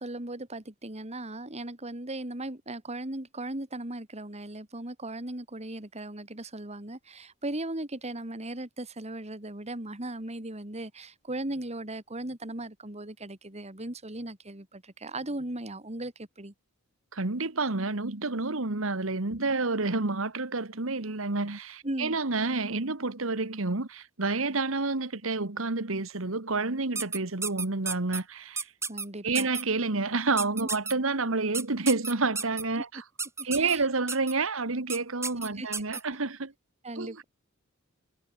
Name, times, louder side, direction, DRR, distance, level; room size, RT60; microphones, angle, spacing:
voice 1, 0.0-16.5 21.8-22.2 28.9-29.5 33.4-33.9 35.4-35.7 36.8-37.2, right 1 dB, 30° right, 3.0 m, -37 dB
voice 2, 17.1-28.7 29.2-33.0 33.4-36.5 36.9-37.2, right 3 dB, 70° right, 1.7 m, -29 dB
sound 1, 27.0-28.2 28.6-29.0 29.3-29.6 30.4-30.9 31.5-32.6 33.2-33.8 34.1-34.3 34.9-35.0 35.2-36.0, right 4 dB, 15° right, 2.3 m, -32 dB
head